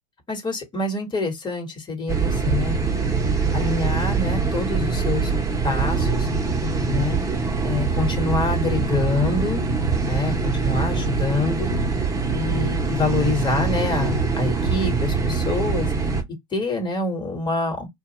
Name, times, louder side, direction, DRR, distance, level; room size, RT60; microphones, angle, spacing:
voice 1, 0.3-2.7 3.5-5.3 5.6-6.3 6.8-7.2 7.6-9.6 10.0-11.7 12.3-15.9 16.5-17.9, left 3 dB, 25° left, 1.4 m, -26 dB
sound 1, 2.1-16.2, right 4 dB, 15° right, 0.8 m, -23 dB
2.5 x 2.3 x 2.9 m
hypercardioid pair, 95°, 20 cm